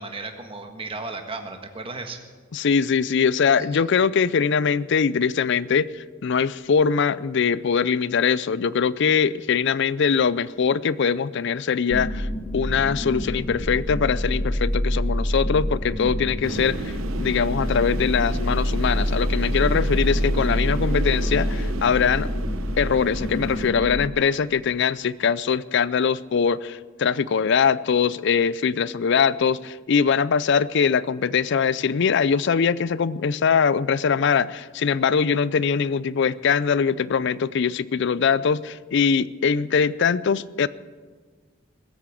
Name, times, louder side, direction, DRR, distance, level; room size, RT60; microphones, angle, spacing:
voice 1, 0.0-2.2 3.6-3.8, right 3 dB, 25° right, 5 dB, 1.5 m, -35 dB
voice 2, 2.5-12.3 12.5-22.3 22.8-40.7, left 6 dB, 60° left, 19 dB, 0.4 m, -22 dB
sound 1, 11.9-24.1, equal, 10° left, 0.6 m, -26 dB
sound 2, 16.4-23.7, right 3 dB, 90° right, 1.0 m, -34 dB
20.5 x 8.6 x 7.6 m, 1.5 s
head